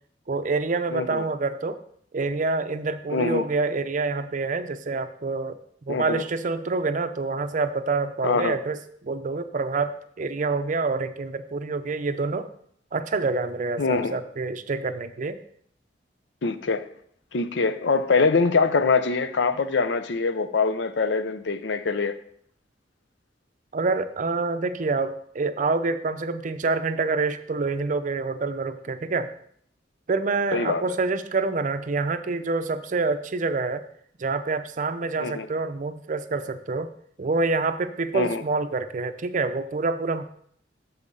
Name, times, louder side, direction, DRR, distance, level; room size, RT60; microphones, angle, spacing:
voice 1, 0.3-1.8 2.1-5.6 5.9-12.5 12.9-15.4 23.7-29.3 30.1-33.8 34.2-36.9 37.2-40.2, right 3 dB, 45° right, 11 dB, 0.5 m, -27 dB
voice 2, 0.9-1.3 3.1-3.4 5.9-6.2 8.2-8.6 13.8-14.2 16.4-16.8 17.3-22.2 30.5-30.8 35.2-35.5 38.1-38.4, left 4 dB, 75° left, 12 dB, 0.6 m, -24 dB
8.0 x 7.1 x 3.7 m, 0.65 s
head